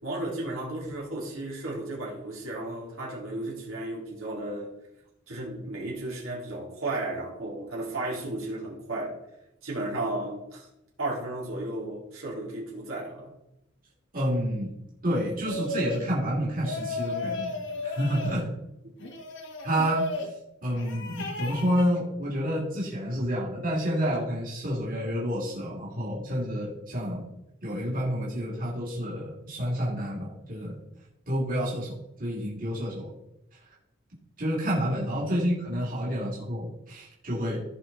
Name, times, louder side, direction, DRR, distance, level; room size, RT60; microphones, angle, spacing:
voice 1, 0.0-4.7 5.3-9.1 9.6-10.7 11.0-13.3 19.0-19.1 35.3-35.4, right 2 dB, 80° right, -4 dB, 3.9 m, -34 dB
voice 2, 14.1-14.7 15.0-18.5 19.6-20.4 20.6-27.3 27.6-30.8 31.3-33.1 34.4-37.6, equal, 45° right, -6 dB, 3.2 m, -29 dB
sound 1, 15.5-16.1 16.6-18.4 19.0-20.3 20.8-21.9, left 2 dB, 60° left, 1.4 m, -34 dB
16.5 x 5.5 x 4.4 m, 0.87 s
head